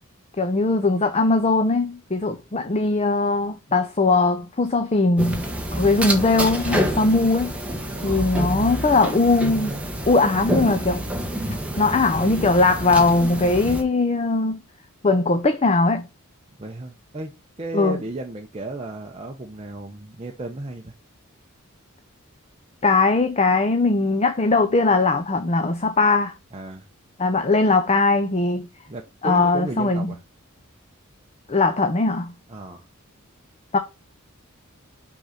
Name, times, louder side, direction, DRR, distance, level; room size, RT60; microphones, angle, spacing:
voice 1, 0.4-5.4 5.7-7.5 8.0-9.8 10.1-11.1 11.8-14.6 15.0-16.1 17.7-18.0 22.8-26.3 27.2-28.7 29.2-30.1 31.5-32.3 33.7-33.8, left 3 dB, 30° left, 0.6 m, -20 dB
sound 1, 5.2-13.8, right 1 dB, 5° right, 1.1 m, -28 dB
voice 2, 8.0-8.4 16.6-20.9 26.5-26.9 28.9-30.2 32.5-32.9, right 2 dB, 25° right, 0.7 m, -34 dB
6.1 x 3.9 x 5.7 m
head